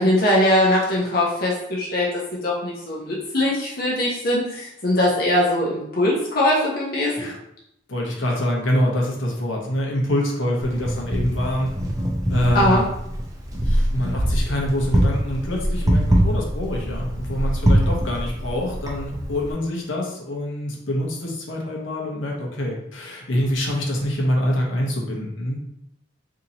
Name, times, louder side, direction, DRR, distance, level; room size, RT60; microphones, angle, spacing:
voice 1, 0.0-2.1 2.4-7.3 12.5-12.8, left 1 dB, 50° left, -4 dB, 0.7 m, -21 dB
voice 2, 7.9-11.7 12.3-12.9 13.5-25.6, left 1 dB, 75° left, -2 dB, 0.8 m, -25 dB
Wind, 10.6-19.5, equal, 20° right, 0.5 m, -23 dB
2.8 x 2.7 x 4.0 m, 0.78 s
head